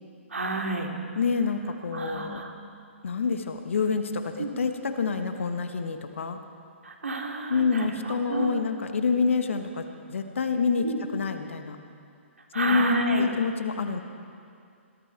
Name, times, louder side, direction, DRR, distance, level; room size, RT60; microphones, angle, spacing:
voice 1, 0.3-0.9 1.9-2.5 4.4-4.5 6.8-8.6 10.8-11.0 12.5-13.3, right 3 dB, 80° right, 2 dB, 2.6 m, -30 dB
voice 2, 1.1-2.4 3.0-6.4 7.5-11.8 12.5-14.0, left 5 dB, 70° left, 7 dB, 1.4 m, -27 dB
21.5 x 14.0 x 4.6 m, 2.4 s
figure-of-eight pair, 130°, 7 cm